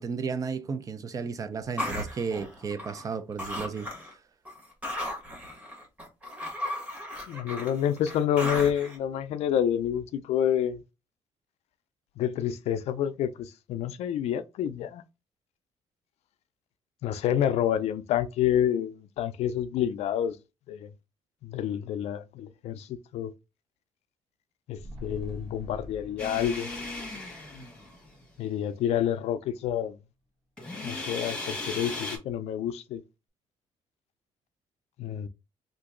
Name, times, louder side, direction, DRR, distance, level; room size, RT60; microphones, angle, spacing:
voice 1, 0.0-4.2, right 5 dB, 30° right, 0.4 m, -33 dB
sound 1, 1.8-3.1 3.4-4.1 4.5-9.0, left 1 dB, 10° right, 1.4 m, -35 dB
voice 2, 7.3-10.8 12.2-15.0 17.0-20.4 20.7-20.9 21.4-23.3 24.7-26.7 28.4-30.0 30.8-33.0 35.0-35.3, left 10 dB, 70° left, 0.4 m, -28 dB
sound 2, 24.7-29.3 29.6-29.7, left 1 dB, 65° right, 1.2 m, -46 dB
sound 3, 26.2-28.2 30.6-32.2, left 2 dB, 10° left, 1.1 m, -36 dB
2.9 x 2.5 x 3.7 m
cardioid pair, 140°, 11 cm